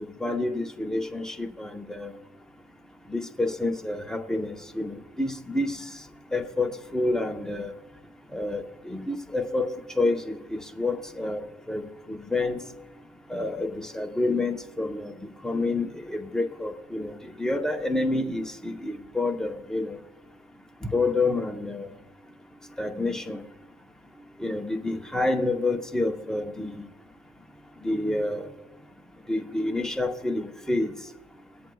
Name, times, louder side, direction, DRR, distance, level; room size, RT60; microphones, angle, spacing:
voice 1, 0.0-2.1 3.1-5.8 6.3-7.7 8.3-12.6 13.3-15.1 15.4-17.1 17.4-20.0 20.8-21.9 22.8-23.4 24.4-26.9 27.8-28.5 29.3-30.9, left 2 dB, 5° left, 4 dB, 0.8 m, -28 dB
22.0 x 7.7 x 2.3 m, 1.0 s
cardioid pair, 110°, 17 cm